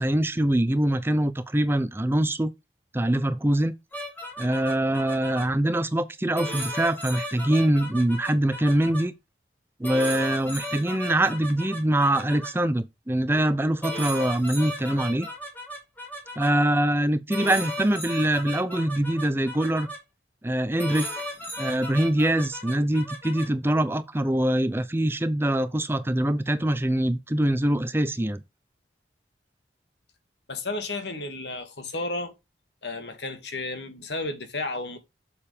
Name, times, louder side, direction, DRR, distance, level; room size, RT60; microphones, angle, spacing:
voice 1, 0.0-2.5 2.9-3.7 4.4-9.1 9.8-15.3 16.4-19.9 20.4-21.1 21.6-28.4, right 1 dB, 15° right, 0.5 m, -24 dB
sound 1, 3.9-5.4 6.3-9.0 9.8-12.5 13.3-13.5 13.8-16.5 17.3-20.0 20.8-23.4, equal, 10° left, 2.6 m, -35 dB
voice 2, 30.5-32.3 32.8-35.0, left 2 dB, 80° left, 2.0 m, -32 dB
7.3 x 6.8 x 3.3 m
head